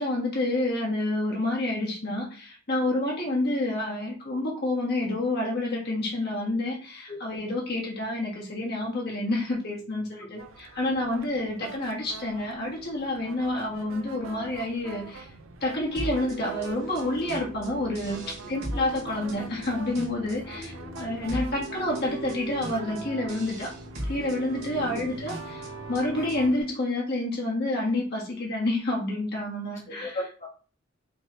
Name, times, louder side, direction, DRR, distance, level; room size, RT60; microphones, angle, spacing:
voice 1, 0.0-15.3 15.6-23.7 24.1-30.2, left 1 dB, 55° left, -2 dB, 1.4 m, -29 dB
sound 1, 10.4-26.7, right 3 dB, 90° right, 0.6 m, -44 dB
sound 2, 16.0-26.6, right 1 dB, 55° right, 2.0 m, -39 dB
voice 2, 18.4-18.7 20.5-20.9 24.8-25.0 30.0-30.5, left 1 dB, 35° left, -5 dB, 1.1 m, -37 dB
5.3 x 3.1 x 3.0 m, 0.36 s
head